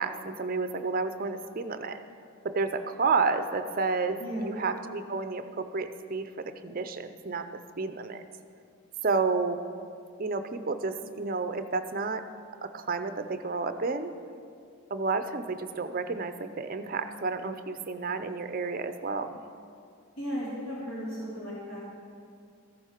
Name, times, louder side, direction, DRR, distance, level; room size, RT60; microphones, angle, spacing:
voice 1, 0.0-2.0 2.4-8.2 9.0-9.6 10.2-12.2 12.6-14.1 14.9-19.4, right 4 dB, 40° right, 9 dB, 0.5 m, -31 dB
voice 2, 4.2-4.5 20.2-21.8, equal, 70° left, -8 dB, 2.9 m, -35 dB
14.0 x 10.5 x 4.5 m, 2.4 s
head